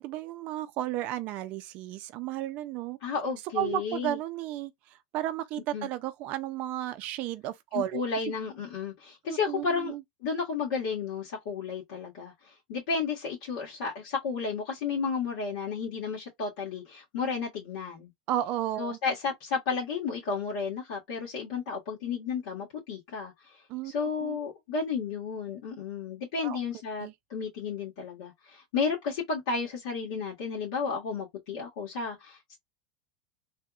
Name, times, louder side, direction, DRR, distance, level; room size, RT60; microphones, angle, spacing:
voice 1, 0.0-3.0 3.6-4.7 5.1-8.0 9.5-10.0 18.3-19.0 23.7-23.9 24.2-24.4 26.4-26.6 27.0-27.1, right 13 dB, 50° right, 0.4 m, -33 dB
voice 2, 3.0-4.2 5.7-5.9 7.7-9.9 10.2-12.3 12.7-18.1 18.8-23.3 23.8-32.6, left 5 dB, 75° left, 1.5 m, -32 dB
3.3 x 2.8 x 2.3 m
supercardioid pair, 120°, 3 cm